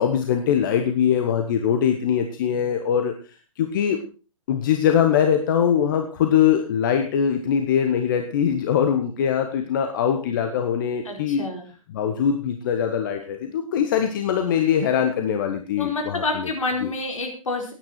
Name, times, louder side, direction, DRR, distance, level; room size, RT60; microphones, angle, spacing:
voice 1, 0.0-3.1 3.6-4.0 4.5-11.4 11.9-16.5 16.8-16.9, left 8 dB, 35° left, 5 dB, 1.3 m, -22 dB
voice 2, 11.0-11.6 15.8-17.7, left 3 dB, 65° left, 2 dB, 4.7 m, -28 dB
17.0 x 9.6 x 4.5 m, 0.36 s
figure-of-eight pair, 130°, 18 cm